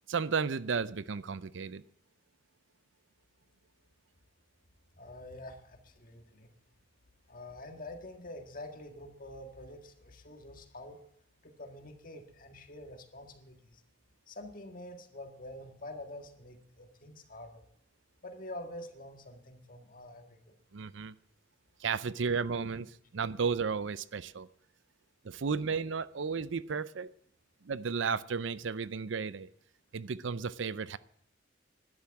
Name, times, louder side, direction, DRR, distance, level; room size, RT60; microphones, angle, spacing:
voice 1, 0.1-1.8 20.7-21.1 21.8-24.5 25.2-27.1 27.6-29.5 29.9-31.0, right 5 dB, 75° right, 0.5 m, -33 dB
voice 2, 5.0-6.5 7.3-11.0 11.4-13.8 14.3-17.7 18.2-20.5, left 1 dB, 45° left, 1.8 m, -47 dB
12.5 x 10.5 x 8.6 m
head